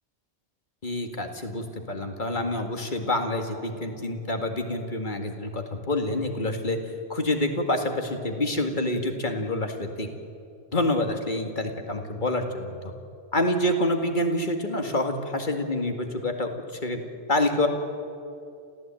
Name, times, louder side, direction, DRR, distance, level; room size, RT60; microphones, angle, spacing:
voice 1, 0.8-6.8 7.1-10.1 10.7-12.8 13.3-16.5 16.8-17.0 17.3-17.7, left 1 dB, 45° left, 4 dB, 2.2 m, -27 dB
28.5 x 15.0 x 9.0 m, 2.6 s
omnidirectional pair, 1.2 m